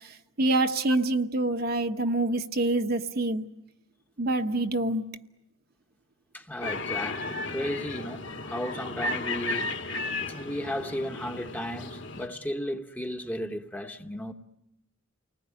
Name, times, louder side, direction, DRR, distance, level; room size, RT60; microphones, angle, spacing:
voice 1, 0.4-3.4 4.2-5.0, right 2 dB, 50° right, 1.1 m, -26 dB
voice 2, 6.3-9.7 10.3-14.3, equal, 10° left, 1.1 m, -34 dB
sound 1, 6.6-12.3, left 2 dB, 60° left, 2.2 m, -34 dB
29.5 x 20.0 x 9.9 m
head